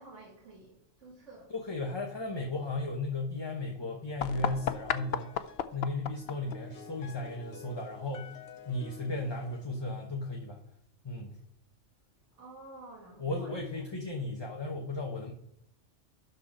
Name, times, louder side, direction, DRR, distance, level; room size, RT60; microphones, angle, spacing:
voice 1, 0.0-1.5 12.4-13.9, right 2 dB, 80° right, -3 dB, 2.1 m, -51 dB
voice 2, 1.5-8.4 8.7-10.6 11.0-11.4 13.2-15.3, left 2 dB, 25° left, 1 dB, 0.9 m, -35 dB
sound 1, 4.2-9.8, left 8 dB, 65° left, 0.8 m, -38 dB
12.0 x 4.2 x 5.0 m, 0.76 s
omnidirectional pair, 1.2 m